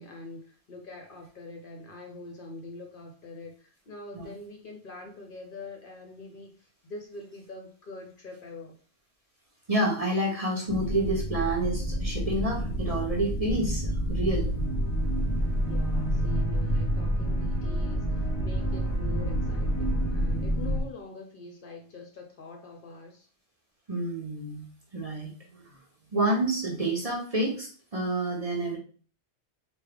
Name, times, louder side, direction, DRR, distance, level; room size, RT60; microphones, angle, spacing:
voice 1, 0.0-8.7 15.7-23.3, left 3 dB, 55° left, 2 dB, 0.7 m, -44 dB
voice 2, 9.7-14.5 23.9-24.7 24.9-25.7 26.1-28.8, right 1 dB, 35° right, -2 dB, 0.8 m, -29 dB
sound 1, 10.7-20.8, equal, 20° left, 0.5 m, -28 dB
3.5 x 2.2 x 3.4 m, 0.41 s
omnidirectional pair, 1.2 m